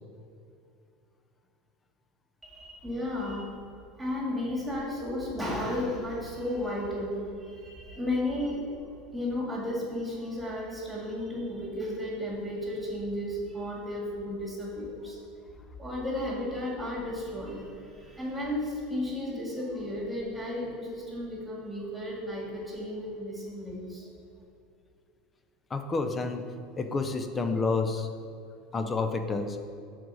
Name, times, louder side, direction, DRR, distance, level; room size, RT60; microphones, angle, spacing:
voice 1, 2.4-3.6 4.0-8.6 9.1-15.2 15.8-24.1, left 1 dB, 5° right, -4 dB, 2.0 m, -33 dB
voice 2, 25.7-26.4 26.8-28.1 28.7-29.6, left 4 dB, 20° left, 7 dB, 0.6 m, -29 dB
7.6 x 4.0 x 6.3 m, 2.5 s
supercardioid pair, 140°, 0 cm